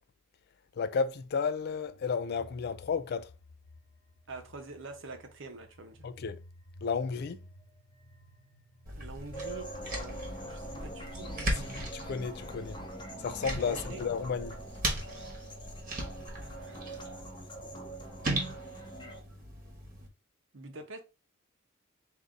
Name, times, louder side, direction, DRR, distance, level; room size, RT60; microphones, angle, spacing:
voice 1, 0.8-3.3 6.0-6.4 6.8-7.4 11.7-12.8 13.2-14.6, left 5 dB, 50° left, 0.3 m, -32 dB
sound 1, 1.6-19.8, left 1 dB, 70° left, 1.2 m, -58 dB
voice 2, 4.3-6.1 9.0-11.9 13.7-14.0 16.4-17.3 20.5-21.0, right 2 dB, 60° right, 0.8 m, -46 dB
sound 2, 8.9-20.1, right 1 dB, 40° right, 1.2 m, -38 dB
sound 3, 9.3-19.2, right 1 dB, 20° left, 0.8 m, -44 dB
3.7 x 2.6 x 3.9 m
head